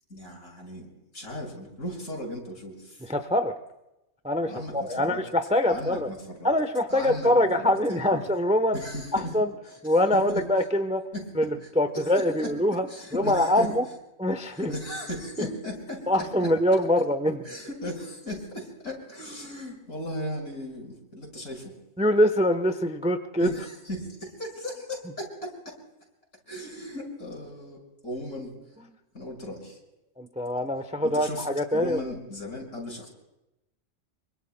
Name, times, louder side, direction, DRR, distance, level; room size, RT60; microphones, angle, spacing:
voice 1, 0.1-3.1 4.4-5.2 5.7-6.5 6.9-8.2 8.7-9.3 9.7-9.8 10.0-10.4 11.1-11.7 11.9-13.7 14.5-16.5 17.4-21.8 23.4-25.8 26.5-28.5 29.1-29.8 31.0-31.4 31.7-33.1, left 1 dB, 70° left, -2 dB, 6.5 m, -37 dB
voice 2, 3.1-3.5 4.2-6.1 6.4-8.8 9.1-9.5 9.8-11.0 11.4-11.5 11.8-12.9 13.1-13.8 14.2-14.7 16.1-17.4 22.0-23.5 30.2-32.0, left 1 dB, 5° right, 8 dB, 0.6 m, -24 dB
26.5 x 24.5 x 2.2 m, 0.92 s
omnidirectional pair, 1.4 m